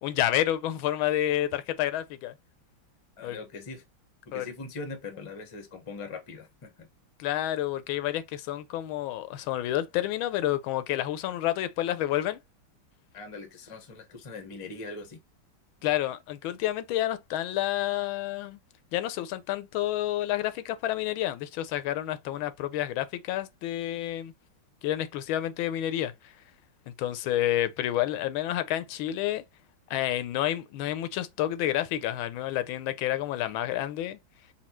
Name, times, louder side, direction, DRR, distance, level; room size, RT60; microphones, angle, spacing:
voice 1, 0.0-2.3 3.2-3.4 4.3-4.5 7.2-12.4 15.8-18.6 18.9-24.3 24.8-26.1 26.9-29.4 29.9-34.2, left 13 dB, 85° left, 1.4 m, -29 dB
voice 2, 3.2-3.8 4.3-6.9 13.1-15.2, left 3 dB, 35° left, 0.5 m, -41 dB
4.3 x 2.3 x 4.3 m
omnidirectional pair, 2.2 m